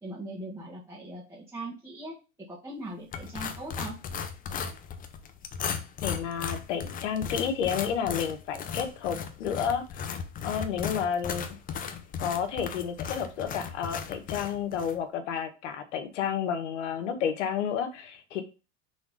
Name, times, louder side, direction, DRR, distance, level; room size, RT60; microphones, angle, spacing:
voice 1, 0.0-2.2 2.5-4.0, right 1 dB, 5° right, -5 dB, 1.8 m, -40 dB
sound 1, 3.1-15.0, left 7 dB, 25° left, 0.8 m, -36 dB
voice 2, 6.0-10.1 10.4-11.5 12.2-18.4, left 8 dB, 80° left, 7 dB, 1.6 m, -31 dB
6.2 x 3.7 x 5.5 m, 0.31 s
supercardioid pair, 135°, 36 cm